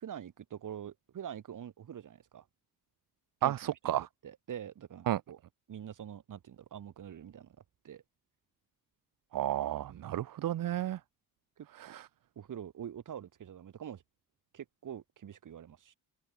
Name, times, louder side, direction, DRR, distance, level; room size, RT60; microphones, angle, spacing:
voice 1, 0.0-2.4 3.4-3.9 4.2-5.4 5.7-7.6 7.8-8.0 9.9-10.2 11.6-12.0 12.3-14.0 14.5-15.9, right 9 dB, 70° right, 4.9 m, -45 dB
voice 2, 3.4-4.1 5.1-5.2 9.3-11.0 11.8-12.1, right 12 dB, 85° right, 1.2 m, -32 dB
wide cardioid pair, 145°, 33 cm